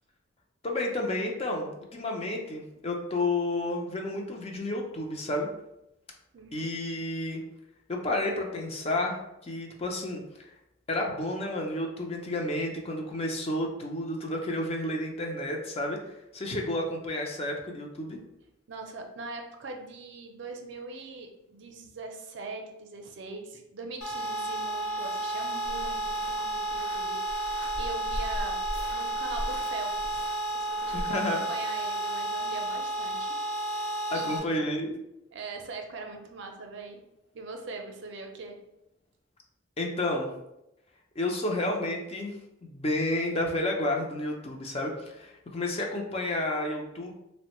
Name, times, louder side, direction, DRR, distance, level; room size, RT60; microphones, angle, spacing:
voice 1, 0.6-5.5 6.5-7.4 7.9-10.2 10.9-16.0 16.3-18.2 30.9-31.4 34.1-35.0 39.8-40.3 41.2-42.3 42.6-47.1, left 1 dB, 30° left, 1 dB, 0.5 m, -31 dB
voice 2, 6.3-6.7 18.7-28.6 28.9-30.3 30.5-31.2 31.5-33.3 33.7-34.6 35.3-37.0 37.3-38.6, right 3 dB, 65° right, 3 dB, 0.5 m, -41 dB
sound 1, 24.0-34.4, right 2 dB, 65° left, 0.7 m, -32 dB
sound 2, 25.6-31.0, equal, 85° left, 1.1 m, -40 dB
3.4 x 2.1 x 2.9 m, 0.86 s
head